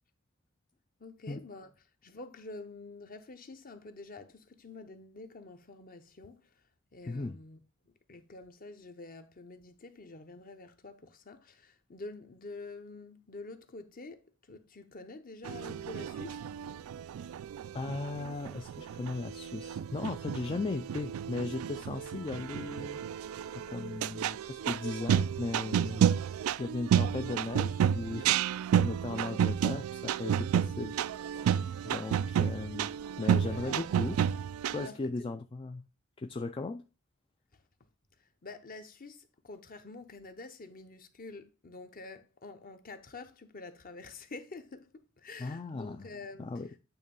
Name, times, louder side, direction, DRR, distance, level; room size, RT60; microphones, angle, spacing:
voice 1, 1.0-1.7 2.0-6.6 6.9-16.4 33.4-33.8 34.7-35.1 37.5-37.6 38.2-46.5, left 3 dB, 45° left, 0.9 m, -47 dB
voice 2, 7.1-7.4 17.2-17.4 17.7-23.0 23.5-26.0 26.6-31.0 31.2-32.9 33.2-34.2 34.7-35.8 36.2-36.8 45.4-46.1 46.4-46.7, left 3 dB, 25° left, 0.4 m, -37 dB
sound 1, 15.4-34.9, right 9 dB, 85° right, 0.3 m, -31 dB
8.9 x 3.1 x 5.3 m
head